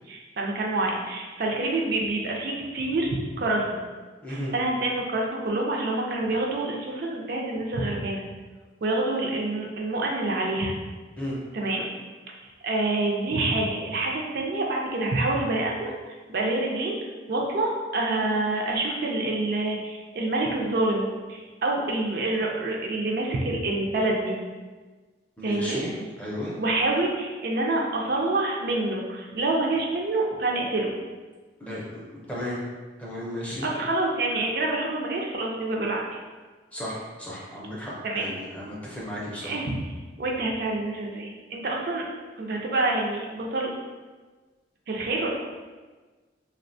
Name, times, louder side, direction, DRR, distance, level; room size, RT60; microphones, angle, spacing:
voice 1, 0.1-3.8 4.3-8.2 8.8-10.8 11.5-11.9 12.4-17.0 17.3-24.4 25.4-25.8 26.5-30.9 33.5-36.2 38.0-38.3 39.4-39.9 40.2-42.1 42.4-43.7 44.9-45.3, right 2 dB, 55° right, -1 dB, 0.4 m, -27 dB
voice 2, 4.2-4.5 11.2-11.4 25.4-26.6 31.6-32.6 33.0-33.7 36.7-39.6, left 1 dB, 5° left, -6 dB, 0.5 m, -34 dB
3.3 x 2.1 x 2.6 m, 1.3 s
head